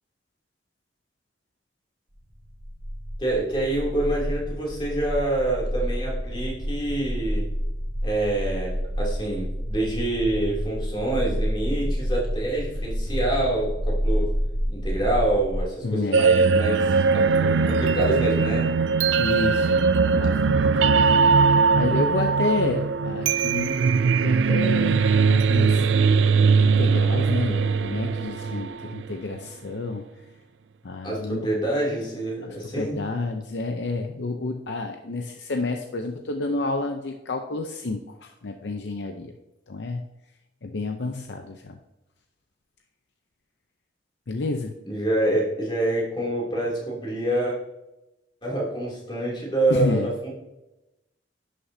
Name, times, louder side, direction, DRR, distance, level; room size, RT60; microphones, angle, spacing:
sound 1, 2.3-15.6, equal, 45° right, 1.5 m, -29 dB
voice 1, 3.2-7.5 8.0-14.3 14.7-18.7 31.0-33.0 44.9-47.6 48.4-50.3, right 1 dB, 25° left, -4 dB, 2.8 m, -26 dB
voice 2, 15.8-16.3 19.2-21.0 21.4-21.5 21.7-23.8 24.2-25.8 26.6-30.0 30.8-31.5 32.8-39.3 39.7-40.1 40.6-41.8 44.3-44.7 49.7-50.1, left 3 dB, 75° left, 4 dB, 0.6 m, -29 dB
sound 2, 16.1-29.1, right 5 dB, 85° right, 0.4 m, -20 dB
11.0 x 6.7 x 2.7 m, 0.94 s
head